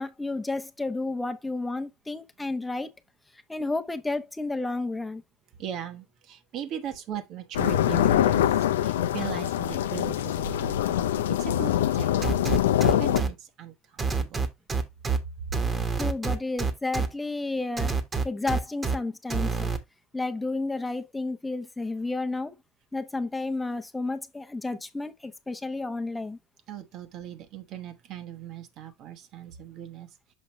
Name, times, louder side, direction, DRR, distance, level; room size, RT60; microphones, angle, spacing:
voice 1, 0.0-2.9 3.5-5.2 16.0-17.9 18.2-19.7 20.1-22.5 22.9-26.4, left 2 dB, 10° left, 0.8 m, -31 dB
voice 2, 5.6-8.5 8.8-12.3 12.9-14.4 26.7-30.1, right 10 dB, 55° right, 1.2 m, -39 dB
sound 1, 7.5-13.2, left 11 dB, 80° left, 0.4 m, -24 dB
sound 2, 12.2-13.3 14.0-15.2 15.5-17.1 17.8-19.0 19.3-19.8, right 4 dB, 25° right, 1.3 m, -27 dB
6.5 x 5.1 x 3.1 m
hypercardioid pair, 75°, 0 cm